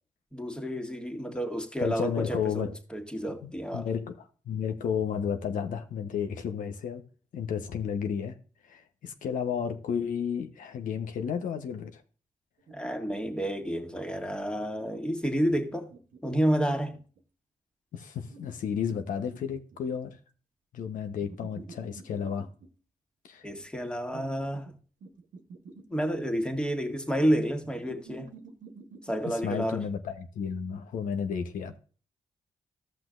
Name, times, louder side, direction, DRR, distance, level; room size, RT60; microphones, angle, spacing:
voice 1, 0.3-3.9 12.7-15.9 16.2-17.0 23.4-24.7 25.9-28.3 29.0-29.8, equal, 5° left, 1.7 m, -30 dB
voice 2, 1.8-2.7 3.4-4.2 4.5-7.0 7.3-8.3 8.6-12.0 17.9-20.2 20.7-22.5 23.3-23.5 29.2-31.8, left 7 dB, 80° left, 1.0 m, -32 dB
sound 1, 12.6-14.4 15.5-17.2 18.2-20.2 21.2-22.7 24.1-24.7 25.0-26.6 27.6-29.2, right 4 dB, 80° right, 1.2 m, -49 dB
14.5 x 6.0 x 2.5 m
cardioid pair, 90°, 13 cm